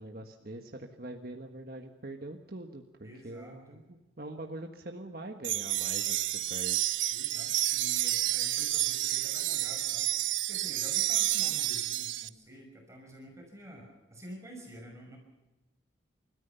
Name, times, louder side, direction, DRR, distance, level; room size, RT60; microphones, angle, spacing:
voice 1, 0.0-6.8, right 1 dB, 50° right, 3 dB, 1.5 m, -43 dB
voice 2, 3.0-3.8 7.1-15.2, right 1 dB, 15° right, 1 dB, 5.9 m, -49 dB
sound 1, 5.4-12.3, right 15 dB, 85° right, 0.7 m, -30 dB
29.5 x 14.5 x 7.0 m, 1.1 s
head